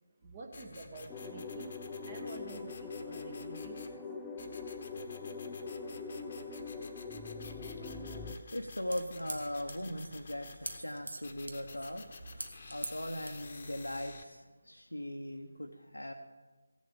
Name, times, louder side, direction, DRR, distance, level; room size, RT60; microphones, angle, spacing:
voice 1, 0.2-1.7 2.0-4.0, right 3 dB, 30° right, 2 dB, 1.3 m, -48 dB
sound 1, 0.5-4.0 4.4-10.8 11.2-14.2, left 4 dB, 40° left, 1.1 m, -51 dB
sound 2, 1.1-8.3, left 4 dB, 10° left, 0.6 m, -42 dB
voice 2, 8.0-16.1, left 1 dB, 85° left, 3 dB, 0.9 m, -40 dB
sound 3, 8.6-13.8, right 2 dB, 70° right, 1.4 m, -45 dB
16.0 x 7.3 x 7.1 m, 1.3 s
figure-of-eight pair, 155°, 0 cm